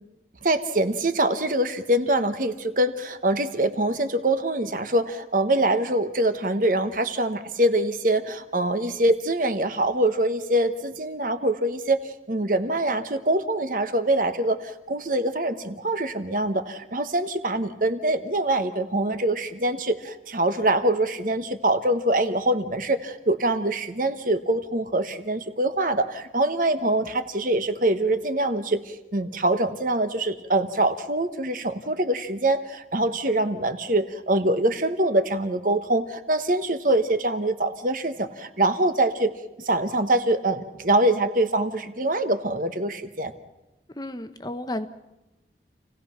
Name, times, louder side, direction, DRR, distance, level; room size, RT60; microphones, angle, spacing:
voice 1, 0.4-12.0 12.3-39.3 39.6-43.3, right 1 dB, 50° right, 9 dB, 1.2 m, -24 dB
voice 2, 43.9-44.9, left 1 dB, 20° left, 9 dB, 0.9 m, -32 dB
28.5 x 17.0 x 5.8 m, 0.99 s
head